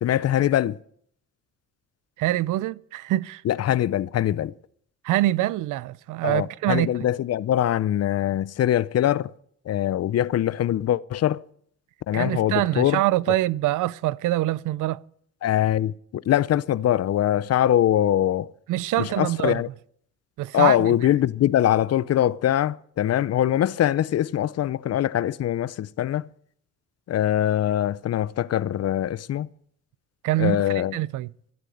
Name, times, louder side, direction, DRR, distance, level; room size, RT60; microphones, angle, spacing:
voice 1, 0.0-0.8 3.5-4.5 6.2-9.3 9.7-11.4 12.1-13.0 15.4-18.5 19.0-19.7 20.5-26.3 27.1-29.5 30.4-31.0, left 11 dB, 55° left, 0.6 m, -23 dB
voice 2, 2.2-3.4 5.0-6.9 12.1-15.0 18.7-19.6 20.4-20.9 30.2-31.3, right 16 dB, 85° right, 0.6 m, -25 dB
13.5 x 11.5 x 8.0 m
cardioid pair, 90°, 30 cm